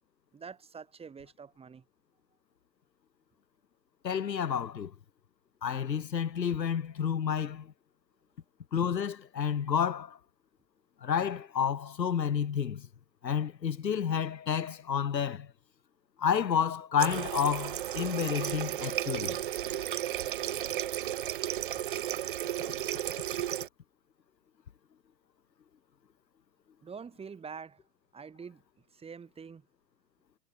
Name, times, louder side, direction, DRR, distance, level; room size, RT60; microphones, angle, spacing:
voice 1, 0.3-1.8 26.8-27.8 28.1-28.6 28.9-29.6, right 6 dB, 10° right, 7.6 m, -45 dB
voice 2, 4.0-4.9 5.6-7.7 8.7-10.2 11.0-12.9 13.2-15.5 16.2-19.4, left 8 dB, 85° left, 1.3 m, -30 dB
Water tap faucet, 17.0-23.7, right 12 dB, 35° right, 0.5 m, -34 dB
hypercardioid pair, 130°, 49 cm